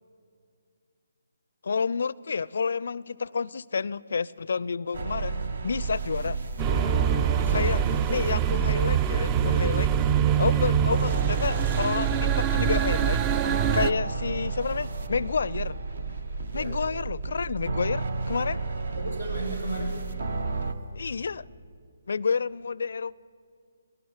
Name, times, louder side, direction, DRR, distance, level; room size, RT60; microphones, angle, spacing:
voice 1, 1.6-6.4 7.5-7.8 8.1-9.9 10.4-13.2 13.7-15.8 16.5-18.6 21.0-21.4 22.1-23.2, left 5 dB, 60° left, 0.4 m, -29 dB
sound 1, 4.9-20.7, right 3 dB, 60° right, 1.4 m, -32 dB
sound 2, 6.6-13.9, right 9 dB, 20° right, 0.5 m, -25 dB
voice 2, 7.4-7.7 10.4-10.6 16.5-16.8 18.9-20.5, right 1 dB, 85° right, 6.0 m, -36 dB
sound 3, 10.9-14.3, right 6 dB, 45° right, 1.1 m, -45 dB
20.5 x 18.5 x 9.7 m
figure-of-eight pair, 140°, 0 cm